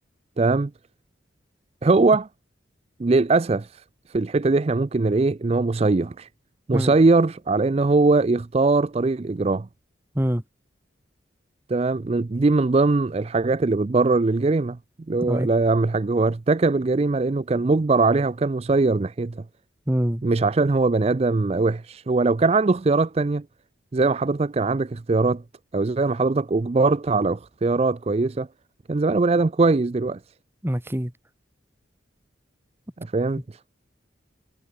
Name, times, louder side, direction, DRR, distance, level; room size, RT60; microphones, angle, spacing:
voice 1, 0.4-0.7 1.8-2.3 3.0-3.8 4.1-6.3 6.7-9.7 11.7-14.8 15.1-19.4 20.2-23.4 23.9-25.4 25.7-28.5 28.9-30.2 33.0-33.4, right 3 dB, 30° right, 0.4 m, -21 dB
voice 2, 19.9-20.2 30.6-31.1, equal, 10° right, 1.3 m, -24 dB
head